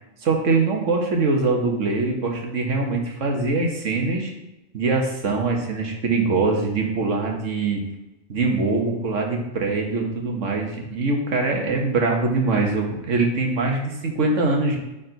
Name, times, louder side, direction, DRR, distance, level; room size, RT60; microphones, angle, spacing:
voice 1, 0.2-4.3 4.7-7.8 8.3-14.8, right 3 dB, 85° right, 1 dB, 1.7 m, -23 dB
8.9 x 4.2 x 4.0 m, 0.97 s
omnidirectional pair, 1.3 m